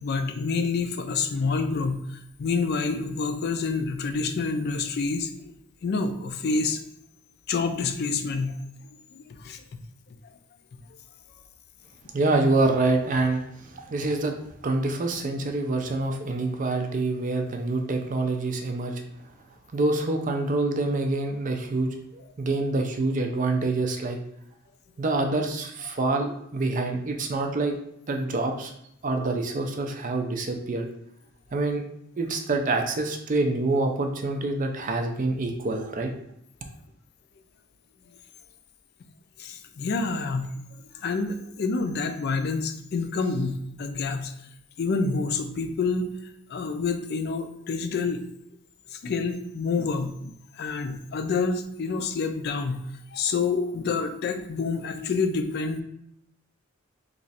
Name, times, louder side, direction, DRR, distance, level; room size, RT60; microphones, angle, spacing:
voice 1, 0.0-5.5 5.8-6.8 7.5-8.5 9.3-9.6 39.4-40.5 40.9-44.3 44.8-46.1 46.5-48.3 48.9-52.8 53.1-55.8, left 4 dB, 50° left, 8 dB, 0.3 m, -28 dB
voice 2, 12.1-14.4 14.6-19.0 19.7-24.2 25.0-27.8 28.1-28.7 29.0-30.9 31.5-31.8 32.2-36.1, right 2 dB, 40° right, 4 dB, 0.4 m, -26 dB
3.0 x 2.4 x 4.0 m, 0.77 s
head